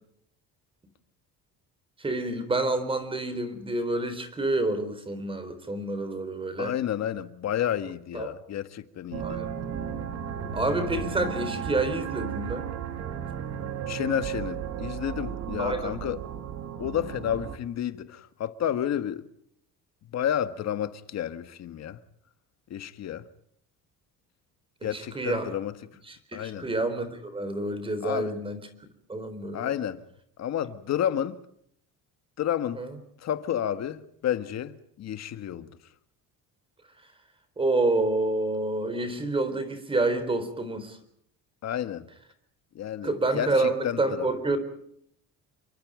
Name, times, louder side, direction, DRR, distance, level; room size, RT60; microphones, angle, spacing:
voice 1, 2.0-6.7 8.1-8.3 9.2-9.5 10.5-12.7 15.6-16.0 24.8-25.5 26.1-28.6 29.1-29.7 32.7-32.9 37.6-41.0 43.0-44.6, right 2 dB, 15° right, 4.0 m, -28 dB
voice 2, 6.6-9.4 13.9-16.2 16.8-19.3 20.1-22.0 22.7-23.2 24.8-25.7 26.3-26.7 28.0-28.3 29.5-30.0 30.4-31.4 32.4-32.8 33.2-35.7 41.6-42.1 42.7-44.3, left 10 dB, 50° left, 1.7 m, -31 dB
sound 1, 9.1-17.6, right 8 dB, 50° right, 2.9 m, -34 dB
29.0 x 24.0 x 5.1 m
cardioid pair, 170°, 34 cm